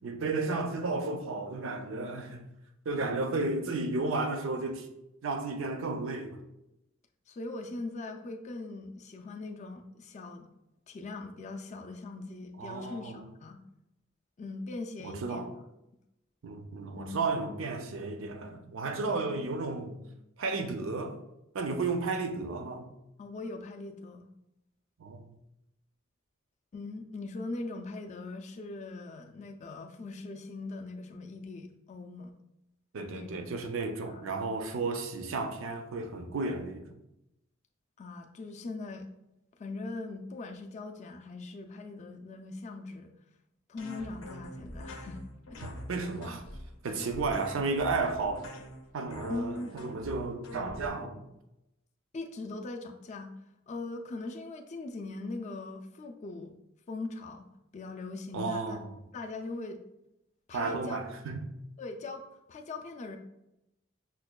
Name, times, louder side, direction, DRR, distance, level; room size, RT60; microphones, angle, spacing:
voice 1, 0.0-2.5 2.9-4.9 5.2-6.4 12.6-13.3 15.0-15.5 16.4-20.0 20.4-21.2 21.5-22.9 25.0-25.3 32.9-36.9 45.6-46.4 46.8-48.5 48.9-51.3 58.3-58.9 60.5-61.5, right 3 dB, 70° right, 0.5 m, -33 dB
voice 2, 7.3-10.5 10.9-13.6 14.4-15.4 16.9-17.4 23.2-24.3 26.7-32.3 33.1-33.4 34.1-34.2 38.0-39.1 39.6-43.1 43.7-45.7 49.3-49.7 52.1-53.3 53.7-56.5 56.9-57.5 57.7-58.8 59.1-59.8 60.5-61.0 61.8-63.2, left 3 dB, 35° left, 0.3 m, -40 dB
sound 1, 43.8-50.9, left 1 dB, 85° left, 0.6 m, -45 dB
5.9 x 2.2 x 2.2 m
head